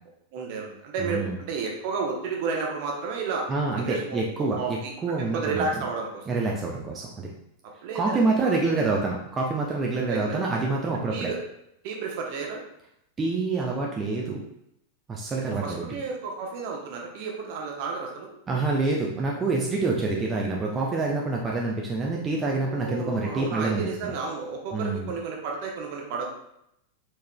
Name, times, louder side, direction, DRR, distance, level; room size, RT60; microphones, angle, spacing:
voice 1, 0.3-3.5 3.8-6.3 7.8-8.9 10.1-10.4 11.1-11.4 11.8-12.6 15.4-18.3 22.5-26.2, right 4 dB, 45° right, 0 dB, 1.0 m, -32 dB
voice 2, 1.0-1.4 3.5-5.7 6.3-7.3 7.9-11.3 13.2-14.4 15.1-15.8 18.5-24.1 24.7-25.1, right 3 dB, 20° right, -2 dB, 0.6 m, -27 dB
4.8 x 4.6 x 2.3 m, 0.79 s
figure-of-eight pair, 90°, 0 cm